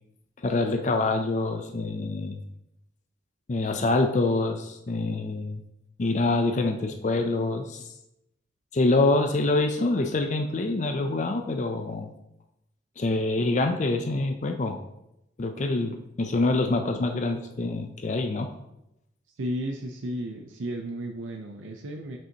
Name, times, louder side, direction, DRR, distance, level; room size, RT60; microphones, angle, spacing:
voice 1, 0.4-2.4 3.5-5.6 6.0-7.9 8.7-12.1 13.0-14.8 15.4-18.5, left 2 dB, 40° left, 6 dB, 0.4 m, -26 dB
voice 2, 19.4-22.2, right 1 dB, 85° right, 3 dB, 0.6 m, -33 dB
7.7 x 5.4 x 2.8 m, 0.86 s
head